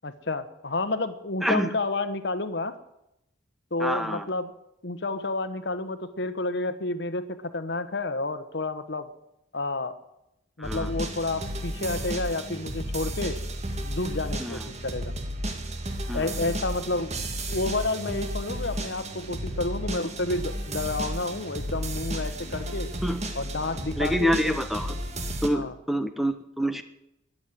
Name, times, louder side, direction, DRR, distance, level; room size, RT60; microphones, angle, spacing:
voice 1, 0.0-2.8 3.7-4.5 4.8-9.1 9.5-10.0 10.6-13.4 13.8-15.1 16.1-22.9 23.3-24.6 25.5-25.7, left 2 dB, 60° left, 11 dB, 1.2 m, -30 dB
voice 2, 3.8-4.3 10.6-10.9 14.4-14.7 16.1-16.3 23.0-23.2 24.0-25.0 25.4-26.8, equal, ahead, 9 dB, 0.8 m, -27 dB
sound 1, 10.6-25.5, right 1 dB, 35° right, 1.9 m, -33 dB
14.5 x 10.5 x 9.2 m, 0.86 s
head